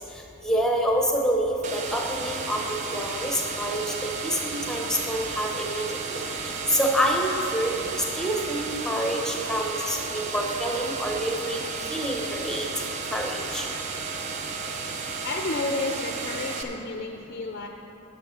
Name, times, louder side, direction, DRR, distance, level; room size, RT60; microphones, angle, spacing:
voice 1, 0.1-2.6 2.9-5.9 6.1-12.7 13.1-13.7, equal, 5° left, 0 dB, 0.9 m, -27 dB
sound 1, 1.6-16.6, right 4 dB, 35° right, 0.6 m, -33 dB
voice 2, 15.2-17.7, left 3 dB, 45° left, 3 dB, 0.5 m, -31 dB
9.6 x 7.0 x 6.3 m, 3.0 s
head